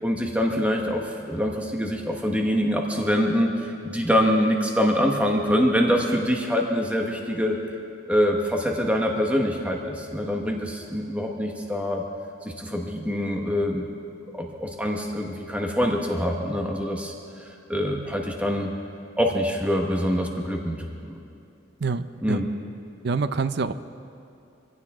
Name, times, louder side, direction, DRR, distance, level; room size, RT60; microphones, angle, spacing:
voice 1, 0.0-7.6 8.1-12.0 12.4-13.8 14.3-17.1 17.4-18.7 19.2-21.2 22.2-22.5, equal, 5° right, 1 dB, 1.1 m, -25 dB
voice 2, 21.8-22.4 23.0-23.7, right 4 dB, 55° right, 12 dB, 0.6 m, -26 dB
24.0 x 16.0 x 3.7 m, 2.6 s
head